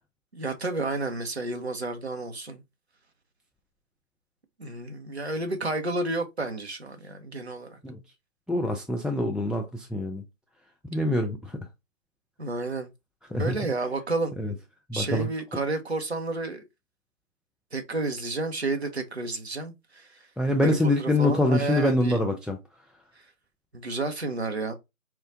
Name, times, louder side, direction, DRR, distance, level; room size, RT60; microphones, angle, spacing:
voice 1, 0.3-2.6 4.6-7.8 12.4-12.9 13.3-14.3 14.9-16.6 17.7-20.1 20.6-22.2 23.7-24.7, right 2 dB, 50° right, 0.6 m, -31 dB
voice 2, 8.5-10.2 10.9-11.6 13.3-13.5 14.4-14.5 14.9-15.3 20.4-22.6, left 1 dB, ahead, 0.3 m, -25 dB
4.4 x 2.2 x 2.5 m
figure-of-eight pair, 175°, 41 cm